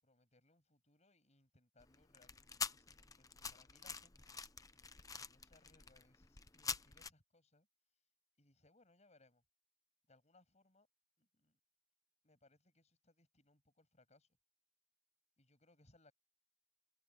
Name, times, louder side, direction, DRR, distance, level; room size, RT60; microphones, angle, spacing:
voice 1, 0.0-4.4 5.1-7.7 8.4-9.4 10.1-10.9 11.2-11.6 12.2-14.3 15.4-16.1, left 2 dB, 40° left, 7.9 m, -71 dB
sound 1, 1.8-7.1, left 5 dB, 20° left, 0.9 m, -47 dB
open air
head